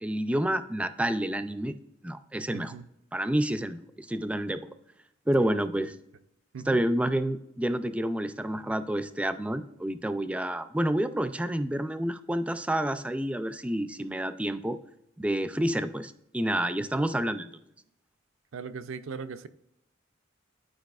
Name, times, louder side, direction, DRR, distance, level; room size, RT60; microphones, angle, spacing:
voice 1, 0.0-1.7 2.0-2.7 3.1-4.6 5.3-5.9 6.7-14.8 15.2-17.5, right 1 dB, 5° right, 0.3 m, -29 dB
voice 2, 2.5-2.8 5.3-5.5 5.8-5.9 6.5-6.8 18.5-19.5, right 5 dB, 80° right, 0.5 m, -39 dB
10.5 x 4.7 x 2.3 m
head